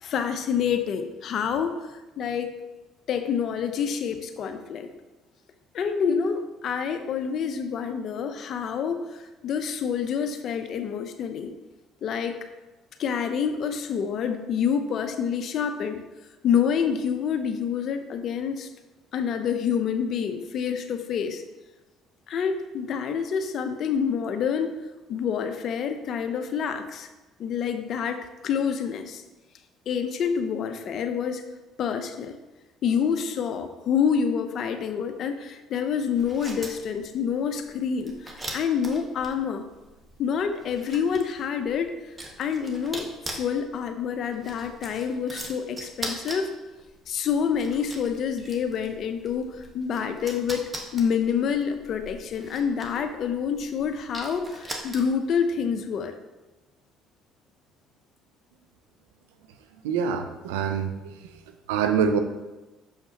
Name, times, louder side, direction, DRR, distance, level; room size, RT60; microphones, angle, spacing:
voice 1, 0.0-2.5 3.1-4.9 5.7-11.5 12.0-12.4 13.0-16.0 16.4-18.7 19.1-21.4 22.3-24.8 25.1-27.1 27.4-29.2 29.9-31.4 31.8-32.4 32.8-39.7 40.2-41.9 42.4-46.5 47.1-56.1, left 7 dB, 60° left, 8 dB, 0.6 m, -27 dB
sound 1, 36.1-55.4, right 1 dB, 25° right, 1.3 m, -41 dB
voice 2, 59.8-61.1 61.7-62.2, right 6 dB, 90° right, 8 dB, 0.5 m, -25 dB
6.5 x 5.6 x 2.8 m, 1.1 s
supercardioid pair, 70°, 0 cm